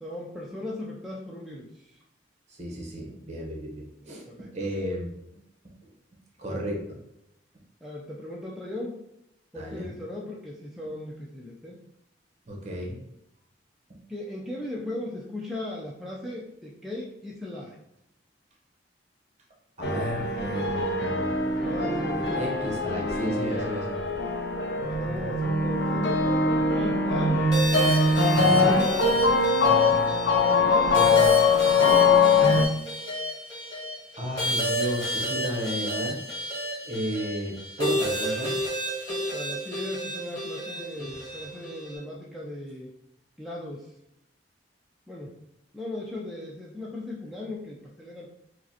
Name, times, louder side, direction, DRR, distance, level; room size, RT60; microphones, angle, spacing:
voice 1, 0.0-2.0 4.0-4.7 6.5-6.7 7.8-9.0 9.5-11.8 14.1-17.8 21.5-22.9 24.9-26.3 26.7-27.5 28.4-29.2 30.4-31.0 31.6-32.2 39.1-42.9 43.4-43.9 45.1-45.4 45.7-48.3, left 1 dB, ahead, -4 dB, 0.4 m, -38 dB
voice 2, 2.5-5.1 5.6-5.7 6.4-7.0 9.5-9.9 12.5-13.0 19.8-21.4 22.1-24.0 28.3-28.7 34.2-36.2 36.8-38.6 40.9-41.4, equal, 40° right, -1 dB, 0.8 m, -33 dB
sound 1, 19.8-32.7, left 3 dB, 70° left, 0.5 m, -22 dB
sound 2, 27.5-42.0, equal, 20° left, 1.4 m, -31 dB
4.8 x 2.1 x 2.7 m, 0.83 s
head